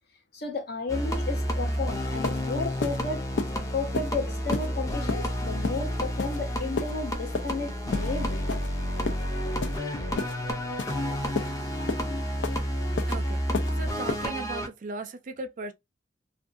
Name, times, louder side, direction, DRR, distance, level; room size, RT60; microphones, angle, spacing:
voice 1, 0.3-3.2 3.7-8.6, left 3 dB, 60° left, 0.8 m, -33 dB
sound 1, 0.9-14.7, equal, 20° left, 0.5 m, -30 dB
sound 2, 1.7-1.8 2.2-2.4 2.8-3.0 3.4-3.5 3.9-4.1 4.5-4.7 5.1-5.2 5.6-5.8 6.2-6.4 6.8-6.9 7.3-7.5 7.9-8.1 8.5-8.7 9.1-9.2 9.6-9.8 10.2-10.3 10.8-10.9 11.4-11.5 11.9-12.0 12.4-12.6 13.0-13.1 13.5-13.7 14.1-14.2, left 3 dB, 90° left, 0.5 m, -30 dB
voice 2, 13.1-13.4 13.7-15.7, right 3 dB, 45° right, 0.4 m, -37 dB
2.6 x 2.3 x 2.5 m
head